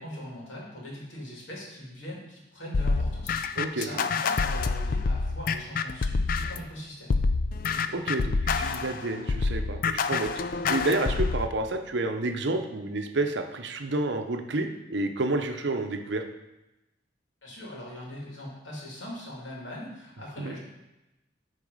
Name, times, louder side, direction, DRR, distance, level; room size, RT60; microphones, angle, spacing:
voice 1, 0.0-7.2 17.4-20.6, equal, 75° left, -3 dB, 2.6 m, -41 dB
sound 1, 2.7-6.7 7.1-11.5, left 4 dB, 45° left, 0.4 m, -27 dB
voice 2, 3.6-4.1 7.9-10.3 10.7-16.2 20.4-20.6, right 2 dB, 65° right, 6 dB, 0.8 m, -29 dB
9.8 x 4.1 x 5.4 m, 0.97 s
head